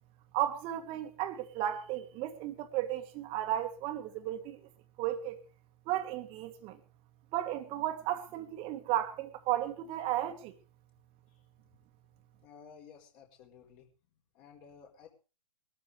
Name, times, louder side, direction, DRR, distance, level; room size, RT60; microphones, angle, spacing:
voice 1, 0.3-4.6 5.0-5.4 5.9-6.8 7.3-10.5, right 12 dB, 25° right, 1.9 m, -34 dB
voice 2, 12.4-13.9 14.3-15.1, left 6 dB, 30° left, 4.7 m, -54 dB
21.5 x 13.0 x 3.6 m
figure-of-eight pair, 125°, 20 cm